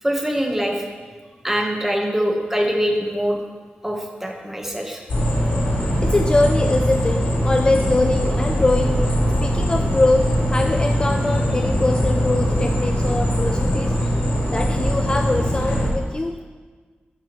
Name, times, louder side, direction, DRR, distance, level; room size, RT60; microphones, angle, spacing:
voice 1, 0.0-0.8 1.4-3.4 3.8-5.0, equal, 10° right, 0 dB, 1.2 m, -23 dB
sound 1, 5.1-15.9, equal, 75° left, 2.3 m, -21 dB
voice 2, 6.0-14.2 14.5-16.4, left 2 dB, 25° left, 5 dB, 0.3 m, -23 dB
12.0 x 4.8 x 3.1 m, 1.5 s
wide cardioid pair, 85°, 4 cm